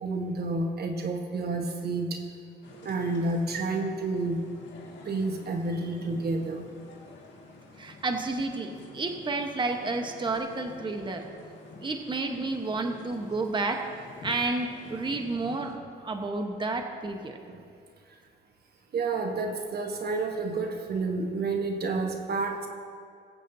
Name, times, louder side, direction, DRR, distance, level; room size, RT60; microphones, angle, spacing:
voice 1, 0.0-2.2 2.8-4.4 5.0-6.6 17.5-17.6 18.9-22.7, right 3 dB, 55° right, 4 dB, 1.2 m, -30 dB
sound 1, 2.6-15.8, left 3 dB, 65° left, 2.0 m, -49 dB
voice 2, 7.8-11.3 11.8-13.9 14.2-17.4, right 3 dB, 25° right, 4 dB, 1.1 m, -31 dB
21.0 x 8.3 x 2.7 m, 2.3 s
cardioid pair, 90°, 20 cm